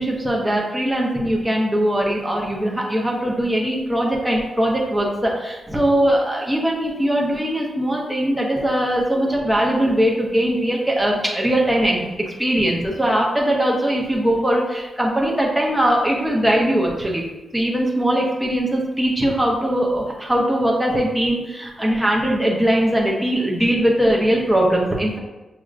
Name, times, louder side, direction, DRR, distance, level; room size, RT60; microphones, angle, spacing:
voice 1, 0.0-17.2 17.5-25.2, right 1 dB, 5° right, -2 dB, 0.8 m, -20 dB
6.3 x 2.9 x 2.5 m, 1.1 s
wide cardioid pair, 130°, 0 cm